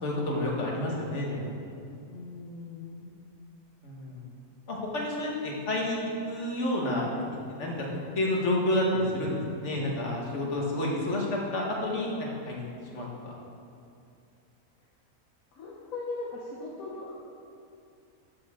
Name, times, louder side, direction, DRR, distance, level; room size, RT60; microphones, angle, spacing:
voice 1, 0.0-1.5 3.8-4.2 4.7-7.1 7.6-7.7 8.2-12.7 12.9-13.3, left 1 dB, 50° left, -2 dB, 1.8 m, -29 dB
voice 2, 2.1-3.2 15.5-17.1, left 3 dB, 65° left, -3 dB, 1.4 m, -39 dB
13.0 x 7.1 x 3.7 m, 2.5 s
omnidirectional pair, 1.6 m